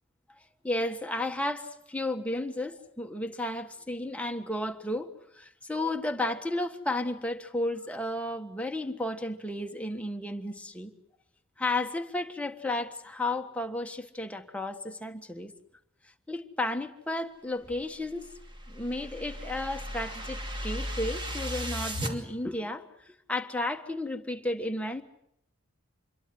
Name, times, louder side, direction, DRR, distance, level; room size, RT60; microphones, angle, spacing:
voice 1, 0.6-10.9 11.6-15.5 16.3-18.3 18.7-25.0, left 1 dB, 5° left, 1.4 m, -33 dB
sound 1, 18.1-22.1, equal, 25° right, 2.7 m, -36 dB
26.5 x 22.5 x 7.8 m
head